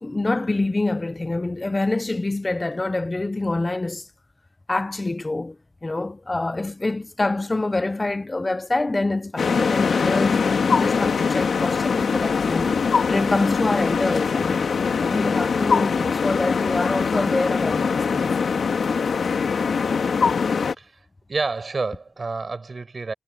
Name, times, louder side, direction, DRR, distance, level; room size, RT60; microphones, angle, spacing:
voice 1, 0.0-4.1 4.7-5.6 5.8-12.7 13.1-18.4, left 2 dB, 25° left, 1.0 m, -26 dB
sound 1, 9.4-20.7, left 5 dB, 85° left, 2.1 m, -22 dB
voice 2, 21.3-23.1, right 3 dB, 45° right, 7.8 m, -28 dB
wide cardioid pair, 100°, 0 cm